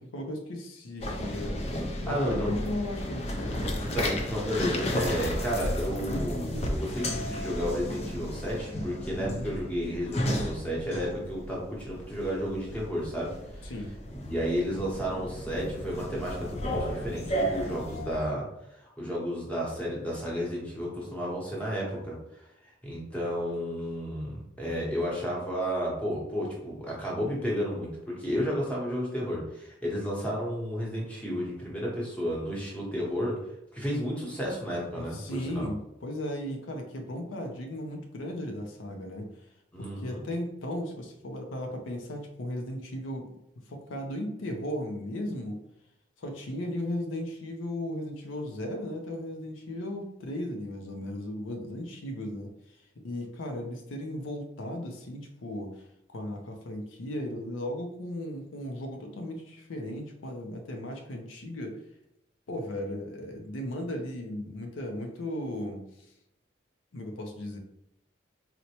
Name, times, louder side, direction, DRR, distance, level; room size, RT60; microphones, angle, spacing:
voice 1, 0.0-1.6 2.0-4.1 9.2-9.5 13.6-13.9 34.9-39.3 39.8-43.3 43.7-45.6 46.2-52.5 52.8-55.7 56.1-61.8 62.5-66.1 66.9-67.6, left 1 dB, 85° left, 3 dB, 0.5 m, -36 dB
sound 1, 1.0-18.2, equal, 35° left, 0.4 m, -33 dB
voice 2, 2.1-2.5 3.9-13.7 14.1-18.5 18.7-27.9 28.2-33.3 33.7-35.7 39.7-40.2, equal, 5° left, -4 dB, 0.8 m, -32 dB
4.1 x 2.1 x 2.8 m, 0.81 s
head